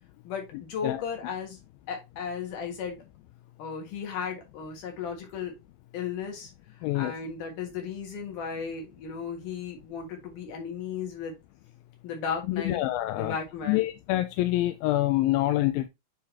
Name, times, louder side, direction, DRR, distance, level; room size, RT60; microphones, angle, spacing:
voice 1, 0.2-1.6 1.9-3.0 3.6-5.5 5.9-6.5 6.8-11.3 12.0-12.8 13.1-13.9, left 6 dB, 60° left, 3.1 m, -35 dB
voice 2, 6.8-7.1 12.5-13.4 13.7-15.9, left 16 dB, 80° left, 2.2 m, -26 dB
9.5 x 4.0 x 2.8 m
omnidirectional pair, 4.5 m